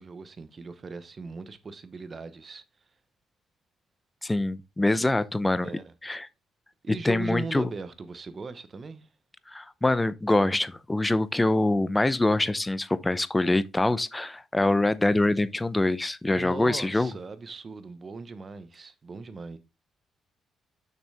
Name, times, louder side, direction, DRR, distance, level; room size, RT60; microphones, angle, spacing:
voice 1, 0.0-2.6 5.0-5.1 5.6-5.9 6.8-9.1 16.3-19.6, right 4 dB, 40° right, 1.0 m, -39 dB
voice 2, 4.2-5.7 6.0-6.3 7.0-7.7 9.5-17.1, left 2 dB, 15° left, 0.6 m, -24 dB
6.7 x 6.0 x 3.4 m
cardioid pair, 90°, 0 cm